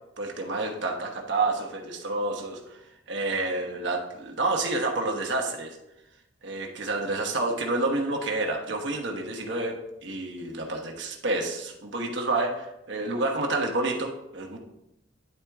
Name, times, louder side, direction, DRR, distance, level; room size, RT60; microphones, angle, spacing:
voice 1, 0.2-5.8 6.4-14.6, right 2 dB, 65° right, 1 dB, 1.2 m, -29 dB
10.5 x 4.4 x 3.5 m, 0.89 s
head